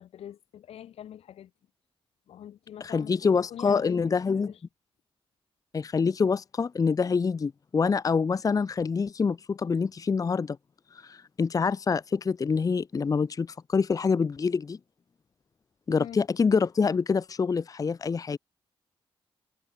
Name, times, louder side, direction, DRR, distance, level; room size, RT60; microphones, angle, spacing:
voice 1, 0.0-1.5 2.3-4.0 4.3-4.6 15.9-16.2, left 10 dB, 85° left, 1.6 m, -44 dB
voice 2, 2.8-4.5 5.7-10.6 11.0-14.8 15.9-18.4, left 5 dB, 35° left, 0.6 m, -26 dB
cardioid pair, 85°, 10 cm